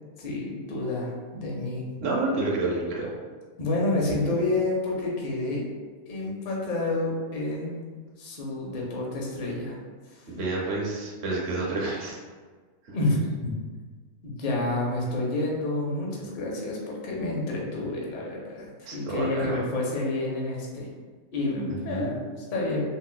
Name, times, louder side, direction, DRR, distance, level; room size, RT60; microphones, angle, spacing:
voice 1, 0.2-1.8 3.6-5.6 6.1-7.7 8.2-9.8 10.1-10.3 12.9-13.5 14.2-20.9 21.3-22.8, left 2 dB, 50° left, -2 dB, 0.6 m, -29 dB
voice 2, 2.0-3.1 10.3-12.2 12.8-13.0 18.8-19.6 21.7-22.2, right 2 dB, 50° right, -4 dB, 0.8 m, -29 dB
3.8 x 2.3 x 2.2 m, 1.4 s
omnidirectional pair, 1.5 m